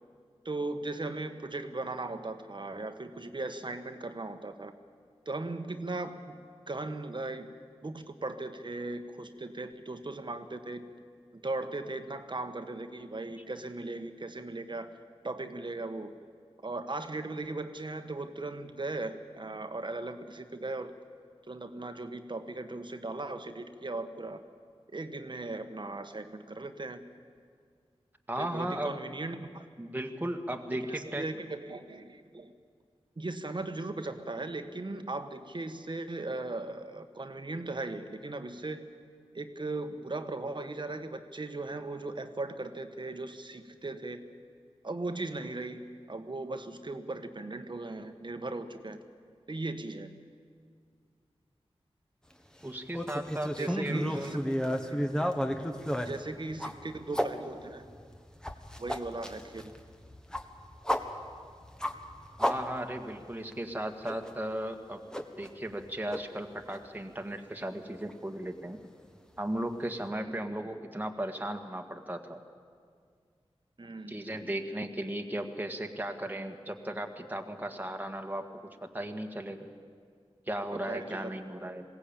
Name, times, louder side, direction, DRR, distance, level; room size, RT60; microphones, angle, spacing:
voice 1, 0.4-4.7 5.2-6.4 6.7-7.5 7.8-10.9 11.3-15.0 15.2-16.1 16.6-20.9 21.5-24.4 24.9-27.0 28.4-29.7 30.7-32.5 33.2-38.9 39.3-44.2 44.8-45.8 46.1-49.0 49.5-50.1 53.6-55.3 56.1-57.8 58.8-59.7 70.2-70.4 73.8-74.2 80.7-81.4, right 2 dB, 45° right, 8 dB, 1.4 m, -38 dB
voice 2, 28.3-29.0 29.8-31.3 52.6-54.3 62.4-65.0 65.4-68.8 69.4-72.4 74.1-78.5 78.8-79.7 80.5-81.8, right 1 dB, 15° right, 3 dB, 1.7 m, -36 dB
sound 1, 52.9-57.3 57.8-63.2 63.5-63.6 64.0-64.3 65.1-65.8 66.1-66.2 66.7-66.8 68.1-68.2, equal, 5° left, 1.6 m, -33 dB
21.0 x 17.0 x 8.8 m, 2.1 s
wide cardioid pair, 50°, 11 cm